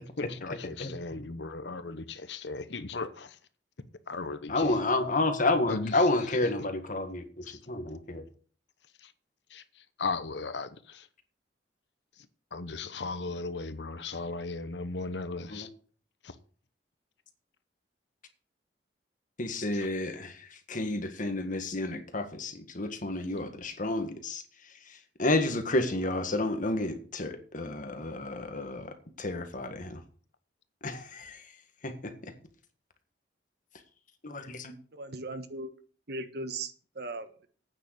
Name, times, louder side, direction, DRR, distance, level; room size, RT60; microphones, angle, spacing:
voice 1, 0.2-3.4 4.1-4.8 5.7-5.9 7.4-7.6 9.0-9.1 9.5-9.6 10.0-11.1 12.5-15.7 16.2-16.3 19.8-19.9, left 3 dB, 75° left, 0.9 m, -36 dB
voice 2, 4.5-8.2 15.5-15.7 19.4-30.0 30.8-31.5 31.8-32.3 34.2-34.7, left 2 dB, 50° left, 1.7 m, -31 dB
voice 3, 34.9-35.7 36.1-37.5, right 2 dB, 65° right, 1.3 m, -38 dB
9.1 x 6.7 x 8.1 m
head